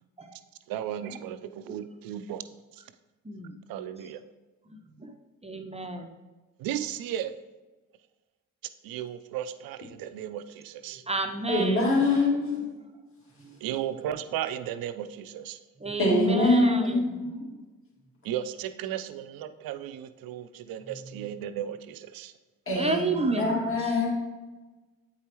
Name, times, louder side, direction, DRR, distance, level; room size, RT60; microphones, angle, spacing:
voice 1, 0.7-2.4 2.7-2.8 3.7-4.2 6.6-7.4 8.8-11.0 13.6-15.6 18.2-22.3, right 10 dB, 70° right, 11 dB, 0.5 m, -35 dB
voice 2, 3.2-3.6 4.7-5.2 5.4-6.1 10.9-12.0 13.4-13.6 15.8-17.3 20.9-21.3 22.7-23.9, right 2 dB, 15° right, 4 dB, 0.7 m, -32 dB
voice 3, 11.5-12.7 16.0-17.5 22.7-23.1 23.4-24.1, left 2 dB, 35° left, -4 dB, 2.2 m, -24 dB
8.0 x 4.7 x 3.0 m, 1.2 s
hypercardioid pair, 55°, 37 cm